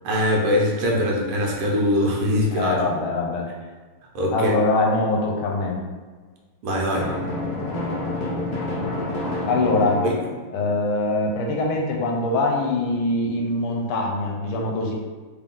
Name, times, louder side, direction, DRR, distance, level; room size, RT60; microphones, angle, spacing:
voice 1, 0.0-2.9 4.1-4.5 6.6-7.1 10.0-10.2, left 1 dB, 80° right, -1 dB, 1.7 m, -22 dB
voice 2, 2.5-3.5 4.3-5.8 9.5-10.0 10.5-14.9, left 2 dB, 85° left, 0 dB, 1.5 m, -23 dB
Drum, 6.9-10.7, left 2 dB, 55° left, 0.8 m, -28 dB
4.0 x 2.3 x 3.7 m, 1.4 s
omnidirectional pair, 2.4 m